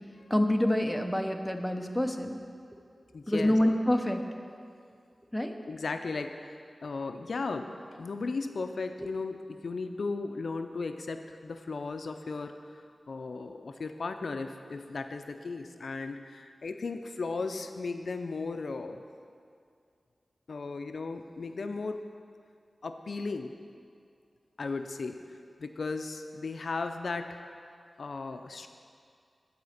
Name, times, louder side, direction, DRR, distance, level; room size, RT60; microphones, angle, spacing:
voice 1, 0.3-2.4 3.3-4.2 5.3-5.6, left 1 dB, 5° left, 4 dB, 0.6 m, -27 dB
voice 2, 3.1-3.6 5.7-19.0 20.5-22.0 22.8-23.5 24.6-25.2 25.6-27.5 28.0-28.7, left 3 dB, 75° left, 7 dB, 0.4 m, -36 dB
11.0 x 4.2 x 6.5 m, 2.3 s
wide cardioid pair, 95°, 0 cm